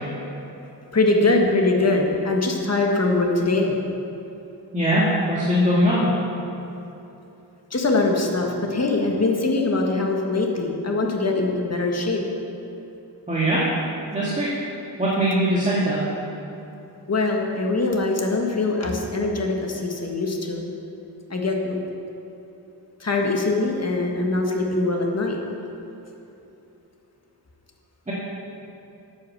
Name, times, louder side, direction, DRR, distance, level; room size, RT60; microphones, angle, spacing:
voice 1, 0.9-3.8 7.7-12.2 17.1-20.6 21.3-21.8 23.0-25.4, left 2 dB, 35° left, 1 dB, 1.5 m, -22 dB
voice 2, 4.7-6.1 13.3-13.6 14.1-14.5 15.0-16.0 28.1-28.2, equal, 15° right, -8 dB, 1.9 m, -21 dB
8.9 x 8.4 x 6.6 m, 2.9 s
wide cardioid pair, 100°, 42 cm